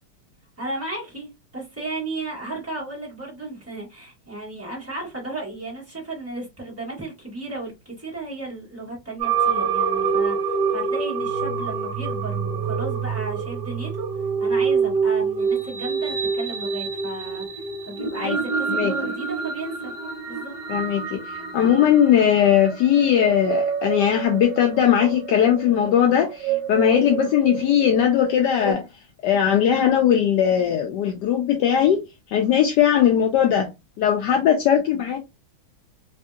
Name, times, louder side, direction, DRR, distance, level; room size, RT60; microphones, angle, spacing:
voice 1, 0.6-19.9 20.3-20.5, right 2 dB, 10° right, 0.8 m, -34 dB
sound 1, 9.2-28.7, right 5 dB, 50° right, 1.4 m, -27 dB
voice 2, 20.7-28.9 29.2-32.0 32.3-33.7 34.0-35.2, left 9 dB, 75° left, 1.0 m, -19 dB
3.5 x 2.6 x 2.3 m
omnidirectional pair, 2.3 m